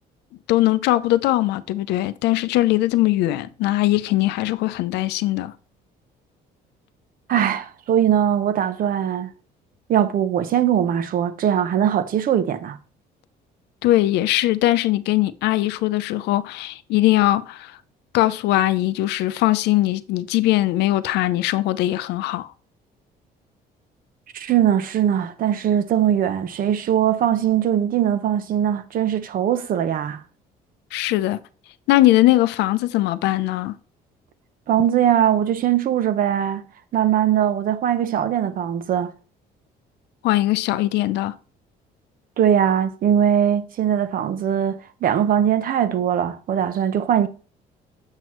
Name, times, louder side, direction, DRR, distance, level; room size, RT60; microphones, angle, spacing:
voice 1, 0.5-5.5 13.8-17.8 18.1-22.5 30.9-31.4 31.9-33.8 40.2-41.4, left 16 dB, 85° left, 0.5 m, -20 dB
voice 2, 7.3-9.3 9.9-12.8 24.3-30.2 34.7-36.6 36.9-39.1 42.4-47.3, right 9 dB, 55° right, 0.8 m, -21 dB
7.6 x 6.1 x 3.1 m
cardioid pair, 110°, 17 cm